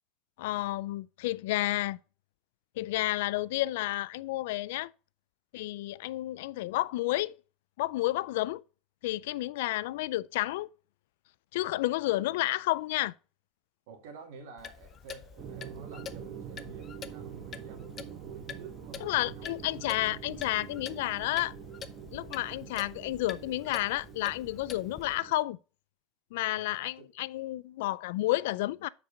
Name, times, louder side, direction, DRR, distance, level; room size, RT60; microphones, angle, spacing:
voice 1, 0.4-2.0 2.8-4.9 5.5-7.3 7.8-8.6 9.0-10.7 11.5-13.1 19.0-21.5 22.1-25.6 26.3-28.9, left 17 dB, 85° left, 0.3 m, -31 dB
voice 2, 13.9-19.9 26.4-27.1, right 4 dB, 85° right, 2.0 m, -51 dB
Clock, 14.6-25.1, left 8 dB, 25° left, 0.5 m, -47 dB
sound 1, 15.4-25.3, right 8 dB, 40° right, 0.7 m, -45 dB
7.1 x 4.7 x 5.1 m
cardioid pair, 175°, 0 cm